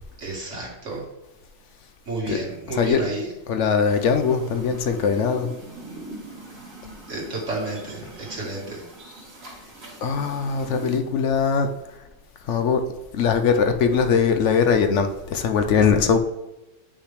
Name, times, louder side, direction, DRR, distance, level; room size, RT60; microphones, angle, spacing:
voice 1, 0.2-1.0 2.1-3.3 7.1-8.9, right 2 dB, 65° right, 2.2 m, -31 dB
voice 2, 2.7-3.1 3.5-5.5 10.0-11.7 12.4-12.8 13.1-16.2, left 6 dB, 70° left, 0.9 m, -21 dB
sound 1, 3.9-11.0, right 2 dB, 85° right, 2.4 m, -41 dB
8.4 x 5.6 x 3.3 m
omnidirectional pair, 1.3 m